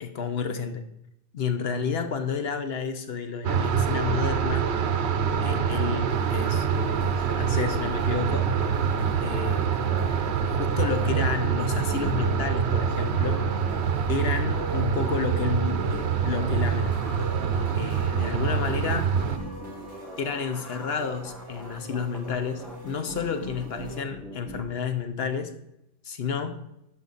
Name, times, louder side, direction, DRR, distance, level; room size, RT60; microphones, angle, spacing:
voice 1, 0.0-0.8 1.3-4.7 5.4-8.5 9.2-10.0 10.5-13.4 14.1-17.0 17.7-19.2 20.2-25.5 26.0-26.6, left 6 dB, 55° left, 8 dB, 1.0 m, -31 dB
sound 1, 3.4-19.4, right 7 dB, 60° right, 0.9 m, -25 dB
sound 2, 6.1-24.0, right 1 dB, 35° left, 2.9 m, -43 dB
sound 3, 9.9-24.6, right 1 dB, ahead, 0.6 m, -43 dB
11.0 x 5.4 x 4.0 m, 0.83 s
omnidirectional pair, 1.3 m